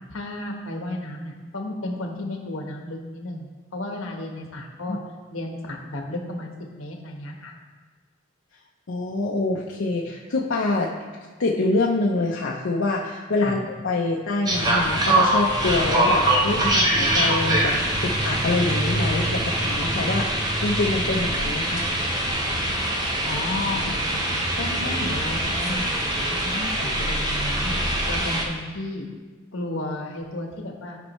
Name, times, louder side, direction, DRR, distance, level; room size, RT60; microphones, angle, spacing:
voice 1, 0.1-5.0 5.3-6.5 6.8-7.5 13.4-13.6 23.0-24.2 24.6-27.8 28.1-29.1 29.5-31.0, left 1 dB, 90° left, 1 dB, 1.2 m, -33 dB
voice 2, 8.9-10.9 11.4-17.7 18.0-21.8, left 2 dB, 70° left, -2 dB, 0.6 m, -25 dB
sound 1, 14.5-28.4, right 1 dB, 20° right, 0.7 m, -23 dB
12.0 x 5.3 x 3.1 m, 1.4 s
head